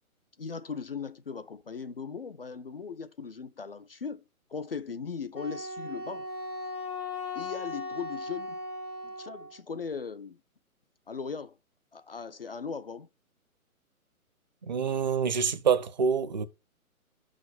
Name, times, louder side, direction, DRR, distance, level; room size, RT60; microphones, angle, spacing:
voice 1, 0.4-4.2 4.5-6.3 7.3-8.6 9.0-10.4 11.1-11.6 11.9-13.1, left 5 dB, 45° left, 0.4 m, -38 dB
Wind instrument woodwind instrument, 5.3-9.6, left 2 dB, 85° left, 1.9 m, -37 dB
voice 2, 14.7-16.4, right 6 dB, 30° right, 0.5 m, -26 dB
5.9 x 4.9 x 5.9 m
figure-of-eight pair, 135°, 44 cm